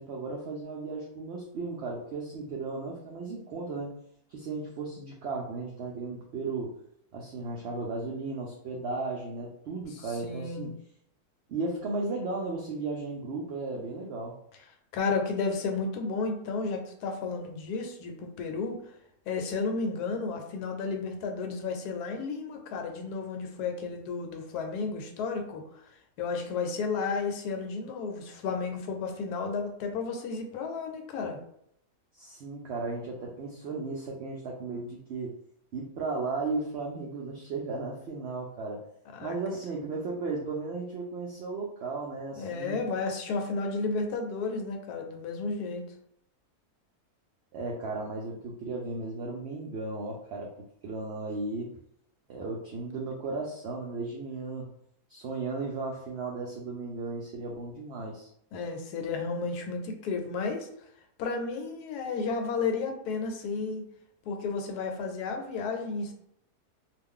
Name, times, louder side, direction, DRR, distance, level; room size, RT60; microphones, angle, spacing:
voice 1, 0.0-4.0 4.3-6.7 7.1-10.7 11.5-14.3 32.1-35.4 35.7-38.8 39.2-42.8 47.5-50.5 50.8-51.7 52.3-54.7 55.1-58.3, right 3 dB, 85° right, -1 dB, 0.5 m, -35 dB
voice 2, 9.9-10.7 14.9-18.9 19.3-25.8 26.2-31.4 39.1-39.3 42.4-45.8 58.5-60.7 61.2-63.9 64.3-66.1, left 4 dB, 80° left, 4 dB, 1.1 m, -32 dB
2.4 x 2.2 x 3.6 m, 0.73 s
omnidirectional pair, 1.7 m